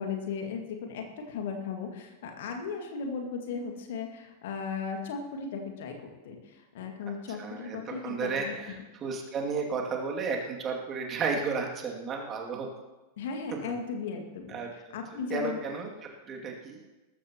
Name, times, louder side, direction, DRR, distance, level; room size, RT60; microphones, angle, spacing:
voice 1, 0.0-8.7 13.2-15.6, left 5 dB, 55° left, 3 dB, 2.2 m, -36 dB
voice 2, 7.3-12.7 13.5-13.8 14.5-16.8, right 4 dB, 25° right, 0 dB, 2.6 m, -33 dB
19.5 x 14.0 x 3.1 m, 1.1 s
figure-of-eight pair, 90°, 0 cm